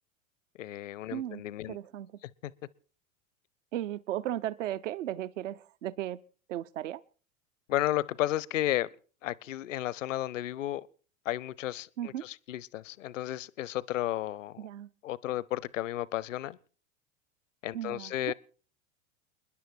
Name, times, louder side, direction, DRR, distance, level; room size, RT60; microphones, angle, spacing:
voice 1, 0.6-1.8 2.2-2.3 7.7-8.9 9.2-10.9 11.2-14.6 15.0-16.6 17.6-18.3, left 14 dB, 65° left, 0.8 m, -33 dB
voice 2, 1.1-1.4 1.7-2.1 3.7-6.2 6.5-7.0 12.0-12.2 14.6-14.9 17.7-18.3, right 12 dB, 65° right, 0.7 m, -35 dB
29.0 x 10.5 x 4.4 m
figure-of-eight pair, 85°, 40 cm